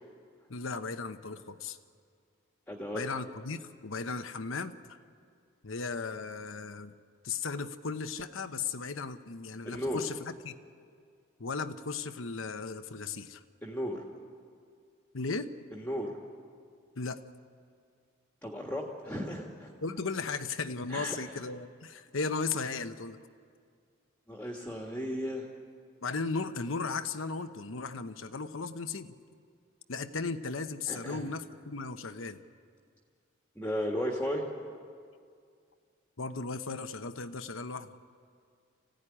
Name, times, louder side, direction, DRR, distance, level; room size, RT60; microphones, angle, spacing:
voice 1, 0.5-1.8 2.9-4.8 5.6-6.9 7.2-10.5 11.4-13.4 15.1-15.5 17.0-17.2 19.8-23.2 26.0-29.1 29.9-32.4 36.2-37.9, left 4 dB, 80° left, 9 dB, 1.0 m, -36 dB
voice 2, 2.7-3.0 9.6-10.0 13.6-14.0 15.7-16.2 18.4-19.7 20.9-21.2 24.3-25.5 30.9-31.3 33.5-34.5, equal, 10° left, 0 dB, 1.8 m, -35 dB
25.0 x 16.5 x 10.0 m, 2.2 s
head